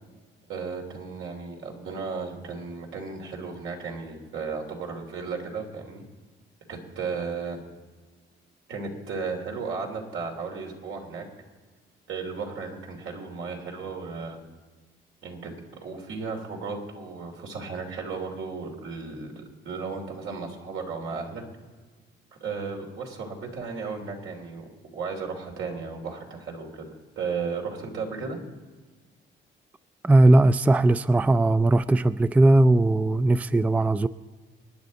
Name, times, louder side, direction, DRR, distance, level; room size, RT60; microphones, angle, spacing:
voice 1, 0.5-6.0 6.7-7.6 8.7-11.3 12.1-14.4 15.2-15.5 15.8-21.4 22.4-28.4, right 4 dB, 80° right, 3.0 m, -34 dB
voice 2, 30.0-34.1, right 2 dB, 5° right, 0.3 m, -19 dB
27.0 x 9.9 x 4.1 m
cardioid pair, 90°, 20 cm